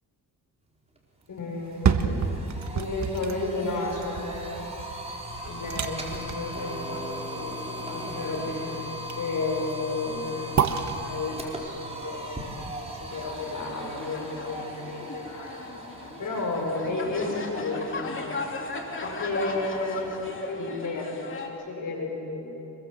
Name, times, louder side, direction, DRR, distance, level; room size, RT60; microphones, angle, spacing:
sound 1, 1.0-1.1 1.4-20.4, equal, 15° right, 4.4 m, -39 dB
voice 1, 1.3-2.3 2.7-4.6 5.4-7.6 7.9-15.6 16.2-18.2 19.0-22.5, left 2 dB, 55° left, 1 dB, 6.5 m, -32 dB
sound 2, 1.6-13.6 14.0-14.1, right 6 dB, 45° right, 1.5 m, -31 dB
sound 3, 13.1-21.5, left 3 dB, 30° left, 3.0 m, -37 dB
25.0 x 21.5 x 7.6 m, 2.9 s
cardioid pair, 90°, 38 cm